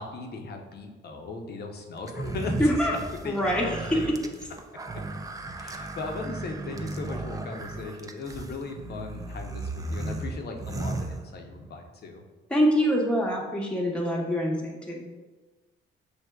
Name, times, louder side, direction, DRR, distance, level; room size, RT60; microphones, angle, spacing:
voice 1, 0.0-3.4 3.6-4.3 5.6-12.2, left 3 dB, 55° left, 3 dB, 0.7 m, -38 dB
sound 1, 2.1-11.8, right 2 dB, 20° right, 0.3 m, -35 dB
voice 2, 2.6-2.9 3.2-3.8 12.5-15.0, equal, 5° left, -2 dB, 0.8 m, -25 dB
6.4 x 2.7 x 2.2 m, 1.2 s
cardioid pair, 90°, 20 cm